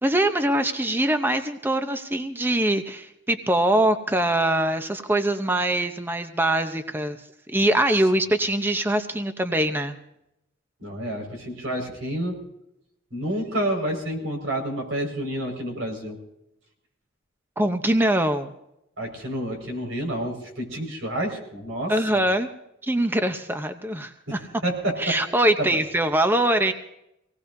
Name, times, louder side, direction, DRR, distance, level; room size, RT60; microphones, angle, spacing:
voice 1, 0.0-7.2 7.5-10.0 17.6-18.5 21.9-22.5 22.8-24.4 25.0-26.7, right 1 dB, 10° right, 7 dB, 0.8 m, -23 dB
voice 2, 10.8-12.4 13.1-16.2 19.0-21.9 24.3-25.2 25.7-25.8, right 1 dB, 90° right, 2 dB, 5.0 m, -29 dB
25.0 x 18.5 x 2.6 m, 0.82 s
head